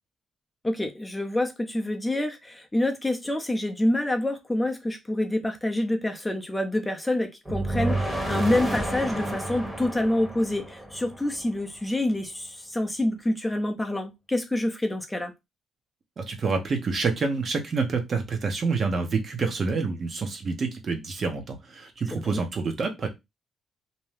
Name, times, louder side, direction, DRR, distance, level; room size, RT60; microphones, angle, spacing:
voice 1, 0.6-15.3 22.1-22.4, left 1 dB, 10° left, 0.5 m, -27 dB
sound 1, 7.5-11.5, right 1 dB, 10° right, 1.0 m, -30 dB
voice 2, 16.2-23.1, right 4 dB, 45° right, 0.8 m, -27 dB
2.7 x 2.2 x 3.2 m
cardioid pair, 90°, 0 cm